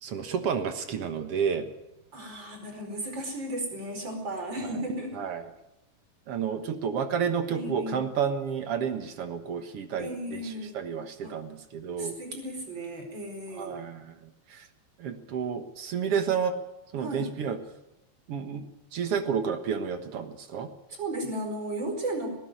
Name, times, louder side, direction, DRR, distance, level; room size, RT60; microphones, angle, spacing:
voice 1, 0.0-1.7 4.6-4.8 5.1-5.5 6.3-12.2 13.5-14.7 15.0-16.5 16.9-17.6 18.3-18.6 18.9-20.7, right 7 dB, 65° right, 8 dB, 1.5 m, -31 dB
voice 2, 2.1-5.2 7.5-8.1 10.0-10.8 11.2-11.3 12.0-13.8 17.0-17.3 21.0-22.3, right 1 dB, 30° right, 5 dB, 5.0 m, -35 dB
19.0 x 17.0 x 9.3 m, 0.89 s
omnidirectional pair, 4.6 m